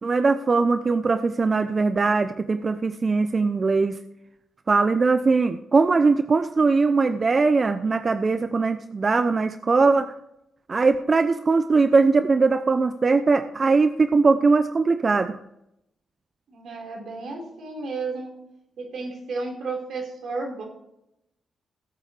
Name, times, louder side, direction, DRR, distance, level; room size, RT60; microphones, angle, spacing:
voice 1, 0.0-4.0 4.7-10.1 10.7-15.4, right 4 dB, 45° right, 10 dB, 0.7 m, -20 dB
voice 2, 16.5-18.3 18.8-20.6, right 3 dB, 70° right, 0 dB, 4.7 m, -32 dB
18.5 x 8.4 x 3.4 m, 0.82 s
supercardioid pair, 50°, 0 cm